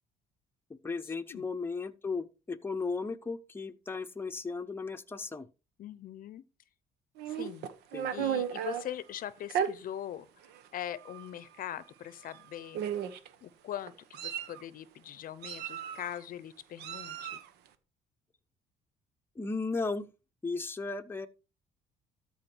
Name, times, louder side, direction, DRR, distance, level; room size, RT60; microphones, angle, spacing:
voice 1, 0.7-5.5 7.9-8.3 19.4-20.1 20.4-21.3, left 4 dB, 15° left, 0.8 m, -35 dB
voice 2, 5.8-6.4 7.3-7.7 8.1-10.3 10.7-12.8 13.4-17.4, left 11 dB, 55° left, 0.7 m, -41 dB
Meow, 7.2-8.8 9.5-9.7 10.5-10.7 11.0-11.2 12.3-12.4 12.7-13.3 13.9-14.6 15.4-16.2 16.8-17.5, right 9 dB, 90° right, 1.1 m, -34 dB
13.5 x 4.7 x 4.5 m
cardioid pair, 110°, 17 cm